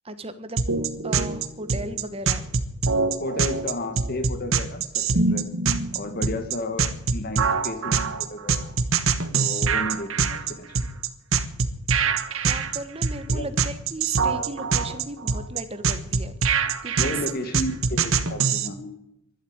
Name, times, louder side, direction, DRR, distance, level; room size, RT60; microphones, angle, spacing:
voice 1, 0.0-0.6 1.0-2.5 12.3-16.4 16.8-17.3, right 2 dB, 25° right, 10 dB, 1.2 m, -36 dB
sound 1, 0.6-18.7, right 5 dB, 60° right, 1.2 m, -24 dB
voice 2, 3.2-5.5 5.9-8.7 9.3-10.9 13.3-13.5 17.0-19.0, left 1 dB, 45° left, 9 dB, 1.7 m, -33 dB
12.0 x 11.5 x 8.8 m, 0.82 s
head